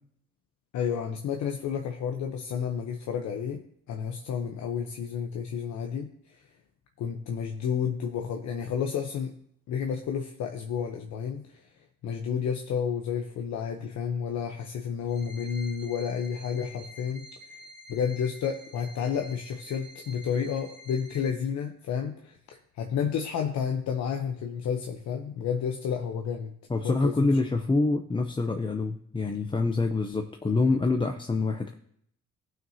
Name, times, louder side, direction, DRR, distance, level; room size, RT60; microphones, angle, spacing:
voice 1, 0.7-6.4 7.0-9.3 9.7-11.7 12.0-17.3 17.9-22.4 22.8-26.5 26.8-27.3, left 7 dB, 70° left, 3 dB, 0.8 m, -31 dB
sound 1, 15.1-21.3, equal, 35° right, 2.0 m, -48 dB
voice 2, 26.7-31.7, left 3 dB, 15° left, 4 dB, 0.6 m, -26 dB
15.5 x 6.2 x 2.8 m, 0.69 s
cardioid pair, 90°, 30 cm